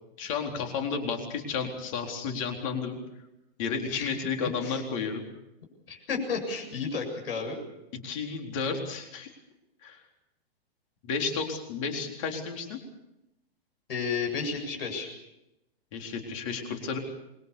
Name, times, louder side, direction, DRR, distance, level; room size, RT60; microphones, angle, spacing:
voice 1, 0.2-3.0 3.6-5.2 8.0-9.3 9.8-10.0 11.0-12.8 15.9-17.0, left 5 dB, 30° left, 3 dB, 4.1 m, -32 dB
voice 2, 5.9-7.6 13.9-15.1, left 5 dB, 65° left, 2 dB, 7.7 m, -32 dB
26.5 x 22.5 x 7.0 m, 0.89 s
hypercardioid pair, 170°, 31 cm